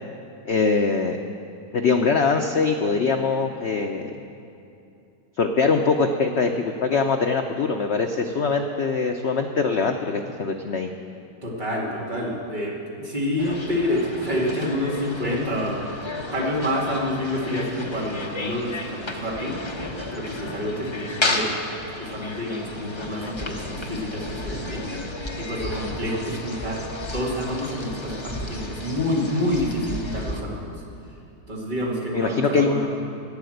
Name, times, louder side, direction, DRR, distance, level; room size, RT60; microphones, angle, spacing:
voice 1, 0.4-1.2 1.7-4.2 5.4-10.9 32.1-32.9, left 4 dB, 80° left, 5 dB, 0.6 m, -22 dB
voice 2, 11.4-15.8 16.1-21.5 22.0-24.9 25.4-30.8 31.5-32.9, left 1 dB, 25° right, -4 dB, 2.3 m, -28 dB
sound 1, 13.4-30.4, left 2 dB, 30° left, 0.5 m, -33 dB
12.0 x 9.2 x 7.8 m, 2.7 s
omnidirectional pair, 1.9 m